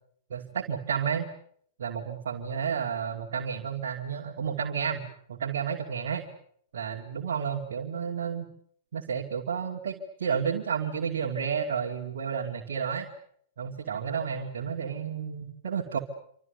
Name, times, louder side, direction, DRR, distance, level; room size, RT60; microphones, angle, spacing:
voice 1, 0.3-1.3 1.8-6.2 6.7-8.5 8.9-13.1 13.6-16.0, right 7 dB, 65° right, 1 dB, 2.6 m, -31 dB
27.5 x 26.0 x 6.9 m, 0.65 s
figure-of-eight pair, 100°, 0 cm